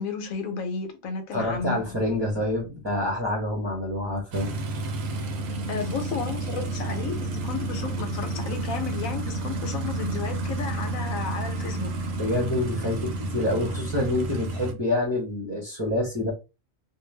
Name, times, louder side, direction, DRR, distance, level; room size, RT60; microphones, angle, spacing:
voice 1, 0.0-1.8 5.7-11.9, left 5 dB, 85° left, 1.1 m, -33 dB
voice 2, 1.3-4.5 12.2-16.3, left 1 dB, 25° right, 0.7 m, -27 dB
sound 1, 4.3-14.7, right 2 dB, 75° right, 1.0 m, -30 dB
2.5 x 2.3 x 3.2 m
omnidirectional pair, 1.4 m